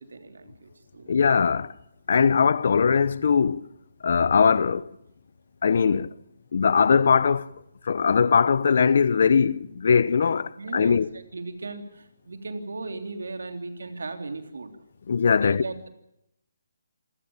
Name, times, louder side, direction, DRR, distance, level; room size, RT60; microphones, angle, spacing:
voice 1, 0.0-1.1 10.6-14.7 15.4-15.9, right 3 dB, 85° right, 3.4 m, -37 dB
voice 2, 1.1-1.7 2.1-3.6 4.0-4.9 5.6-6.1 6.5-7.5 7.8-11.1 15.1-15.6, left 6 dB, 55° left, 0.9 m, -20 dB
27.5 x 16.5 x 7.3 m
hypercardioid pair, 165°, 0 cm